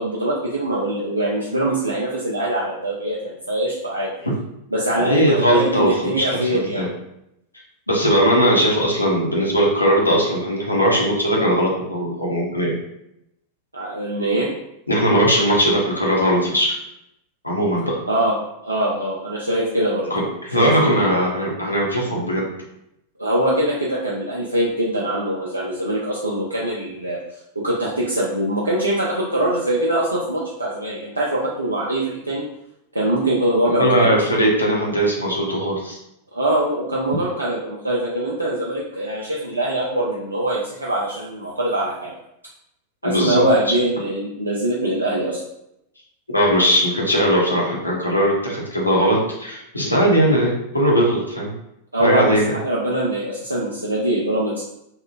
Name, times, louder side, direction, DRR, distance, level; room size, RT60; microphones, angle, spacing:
voice 1, 0.0-4.1 4.7-6.9 13.7-14.5 18.1-18.4 18.6-20.1 20.5-21.3 23.2-32.4 32.9-34.1 36.3-42.1 43.0-45.4 51.9-54.6, right 1 dB, 80° right, -5 dB, 0.4 m, -23 dB
voice 2, 5.0-6.9 7.9-12.7 14.9-16.8 17.4-18.0 20.1-22.5 33.8-36.0 43.0-43.4 43.7-43.8 46.3-51.5 52.0-52.5, equal, 85° left, -3 dB, 0.6 m, -19 dB
2.8 x 2.0 x 2.4 m, 0.82 s
figure-of-eight pair, 90°, 0 cm